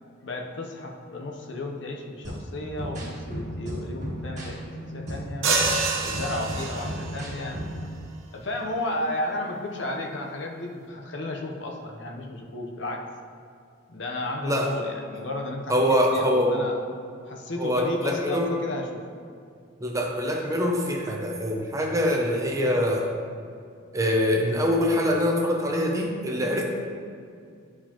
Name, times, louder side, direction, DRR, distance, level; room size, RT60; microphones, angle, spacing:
voice 1, 0.2-5.5 6.0-7.6 8.3-13.0 13.9-16.8 17.3-19.0, left 2 dB, 60° left, 1 dB, 0.8 m, -33 dB
sound 1, 2.2-7.9, equal, 40° right, 1.5 m, -35 dB
sound 2, 5.4-7.2, right 4 dB, 80° right, 1.0 m, -26 dB
voice 2, 15.7-16.5 17.6-18.5 19.8-23.1 23.9-26.6, equal, 15° right, 1 dB, 0.6 m, -24 dB
10.5 x 4.8 x 2.9 m, 2.4 s
head